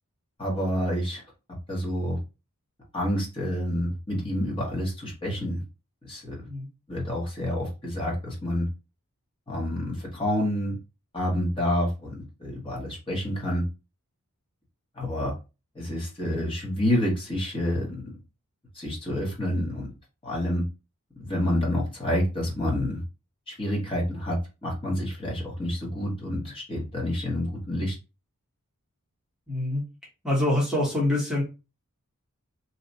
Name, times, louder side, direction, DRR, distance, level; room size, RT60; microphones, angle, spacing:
voice 1, 0.4-1.2 1.7-2.2 2.9-5.6 6.0-6.5 6.9-8.7 9.5-10.8 11.1-13.6 14.9-15.3 15.7-18.2 18.7-19.9 20.2-20.6 21.2-23.0 23.5-27.9, left 1 dB, 25° left, -3 dB, 1.2 m, -28 dB
voice 2, 29.5-29.8 30.2-31.4, left 1 dB, ahead, -5 dB, 1.1 m, -25 dB
2.9 x 2.3 x 3.9 m, 0.29 s
head